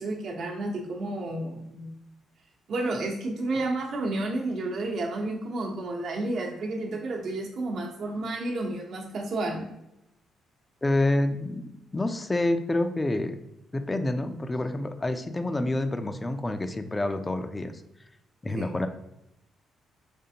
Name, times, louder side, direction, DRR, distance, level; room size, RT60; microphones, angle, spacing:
voice 1, 0.0-1.9 2.7-9.7 18.5-18.7, right 2 dB, 60° right, -1 dB, 0.9 m, -31 dB
voice 2, 10.8-13.4 13.7-17.7 18.4-18.9, left 2 dB, 20° left, 8 dB, 0.4 m, -28 dB
5.2 x 3.3 x 2.8 m, 0.85 s
cardioid pair, 90°, 0 cm